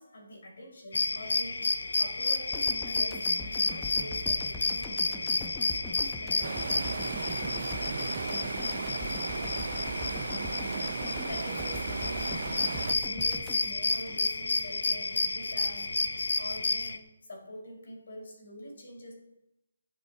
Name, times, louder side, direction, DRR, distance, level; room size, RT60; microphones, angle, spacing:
voice 1, 0.0-5.7 6.0-10.9 11.2-19.1, left 1 dB, 65° left, 0 dB, 5.5 m, -46 dB
sound 1, 0.9-17.0, left 3 dB, 80° left, 1.2 m, -31 dB
sound 2, 2.5-14.7 15.0-15.2, left 2 dB, 10° left, 0.9 m, -42 dB
Stream, 6.4-13.0, right 6 dB, 55° right, 0.4 m, -36 dB
18.5 x 7.3 x 4.5 m, 0.90 s
hypercardioid pair, 165°, 0 cm